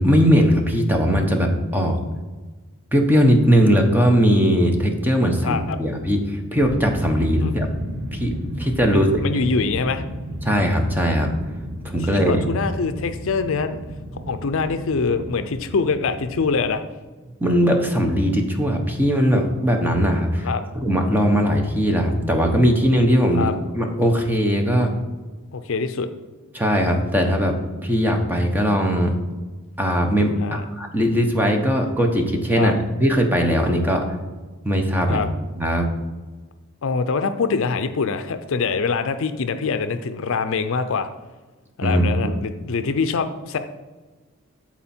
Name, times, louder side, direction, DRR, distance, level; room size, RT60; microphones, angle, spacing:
voice 1, 0.0-2.0 2.9-7.7 8.1-9.1 10.4-11.3 11.9-12.5 17.4-20.5 20.8-23.5 23.7-24.9 26.5-27.5 27.8-29.1 29.8-34.0 34.6-35.2 35.5-35.9 41.8-42.3, equal, 10° right, 3 dB, 0.9 m, -19 dB
voice 2, 5.4-5.8 7.4-7.5 8.9-10.0 12.1-13.8 14.3-16.8 20.4-20.6 23.3-23.5 25.5-26.1 30.4-30.6 32.6-32.7 35.1-35.3 36.8-41.1 41.8-43.6, left 4 dB, 65° left, 10 dB, 0.5 m, -24 dB
sound 1, 6.6-16.7, equal, 55° right, 1.5 m, -33 dB
13.0 x 4.4 x 4.4 m, 1.3 s
head